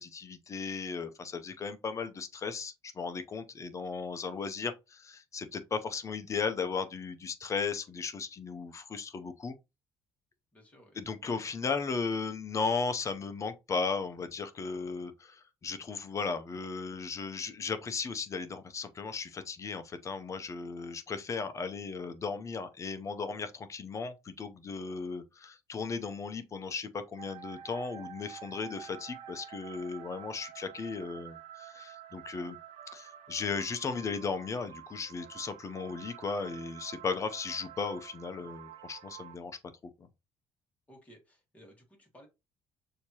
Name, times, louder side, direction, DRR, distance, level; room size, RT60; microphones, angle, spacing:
voice 1, 0.0-9.6 11.0-32.6 32.9-39.9, left 5 dB, 30° left, 0.7 m, -36 dB
voice 2, 10.5-11.0 40.9-42.3, equal, 15° left, 1.9 m, -57 dB
sound 1, 27.2-39.4, right 10 dB, 80° right, 0.5 m, -49 dB
6.5 x 2.8 x 2.9 m
cardioid pair, 140°, 10 cm